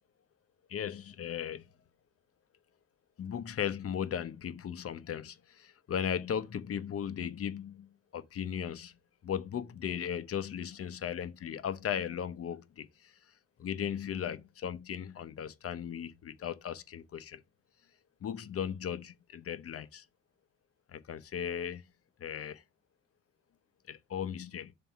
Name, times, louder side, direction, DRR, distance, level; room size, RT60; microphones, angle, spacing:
voice 1, 0.7-1.7 3.2-9.0 9.2-13.2 13.6-17.4 18.2-20.1 20.9-21.8 22.2-22.6 23.9-24.7, left 8 dB, 50° left, 0.8 m, -37 dB
5.5 x 3.5 x 5.7 m
cardioid pair, 90°, 30 cm